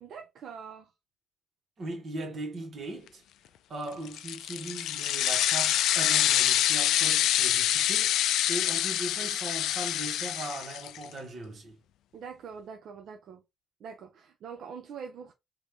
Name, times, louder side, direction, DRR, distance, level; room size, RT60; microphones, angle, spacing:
voice 1, 0.0-0.9 12.1-13.4 13.8-15.3, right 6 dB, 60° right, 0.6 m, -43 dB
voice 2, 1.8-3.2 3.7-8.2 8.5-11.8, right 2 dB, 40° right, 1.9 m, -39 dB
sound 1, 4.1-11.0, left 12 dB, 85° left, 0.3 m, -26 dB
4.1 x 3.1 x 3.3 m
cardioid pair, 155°, 0 cm